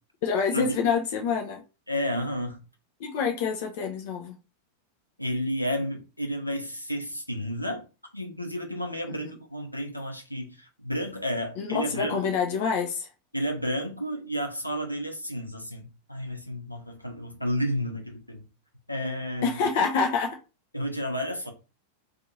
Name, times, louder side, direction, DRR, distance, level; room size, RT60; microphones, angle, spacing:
voice 1, 0.2-1.6 3.0-4.4 11.6-13.1 19.4-20.4, left 5 dB, 50° left, 0.5 m, -27 dB
voice 2, 1.9-2.6 5.2-7.8 8.1-12.2 13.3-18.5 18.9-19.6 20.7-21.5, equal, 90° left, 0.7 m, -31 dB
2.7 x 2.5 x 3.9 m
figure-of-eight pair, 90°, 0 cm